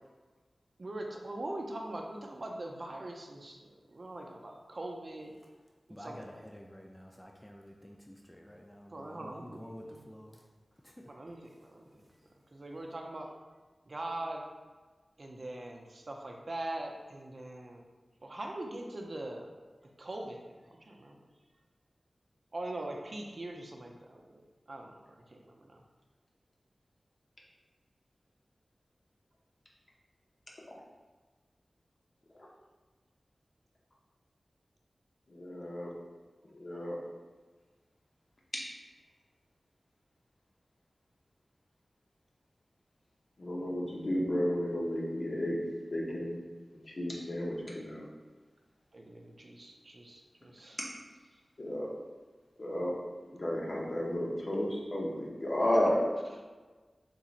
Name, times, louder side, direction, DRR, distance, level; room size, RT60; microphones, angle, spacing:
voice 1, 0.8-5.4 5.9-6.4 8.9-10.1 11.1-12.0 12.5-13.3 13.9-14.4 15.2-17.9 18.2-19.5 20.0-20.4 20.8-21.3 22.5-24.2 24.7-25.8 48.9-50.8, right 1 dB, 60° right, 1 dB, 0.5 m, -42 dB
voice 2, 5.9-10.4 10.8-11.1, equal, 10° left, 2 dB, 0.3 m, -49 dB
voice 3, 35.3-35.9 36.5-37.0 43.4-45.6 45.9-46.4 47.0-48.0 51.6-51.9 52.6-52.9 53.4-56.0, left 1 dB, 60° left, -3 dB, 0.8 m, -32 dB
3.7 x 2.9 x 2.5 m, 1.3 s
cardioid pair, 40°, 0 cm